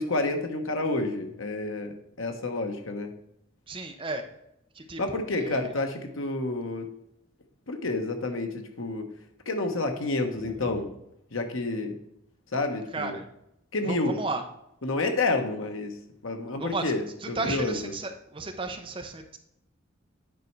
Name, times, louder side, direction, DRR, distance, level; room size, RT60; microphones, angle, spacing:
voice 1, 0.0-1.9 2.2-3.1 5.0-6.9 7.7-9.1 9.4-10.9 11.3-11.9 12.5-13.2 13.7-14.2 14.8-15.9 16.2-17.9, left 2 dB, 90° left, 5 dB, 1.3 m, -29 dB
voice 2, 3.7-4.2 4.8-5.7 12.9-13.2 13.9-14.4 16.6-16.8 17.4-19.4, right 3 dB, 25° right, 5 dB, 0.9 m, -33 dB
9.2 x 5.5 x 4.7 m, 0.80 s
head